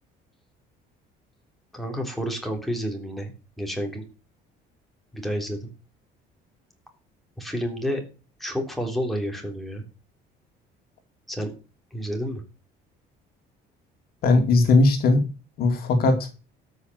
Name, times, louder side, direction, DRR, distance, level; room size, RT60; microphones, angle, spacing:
voice 1, 1.7-4.0 5.1-5.7 7.4-8.0 8.4-9.8 11.3-11.5 11.9-12.4, equal, ahead, 2 dB, 3.4 m, -30 dB
voice 2, 14.2-15.3 15.6-16.3, left 3 dB, 55° left, 6 dB, 2.4 m, -19 dB
13.0 x 5.7 x 7.9 m, 0.33 s
cardioid pair, 155°, 19 cm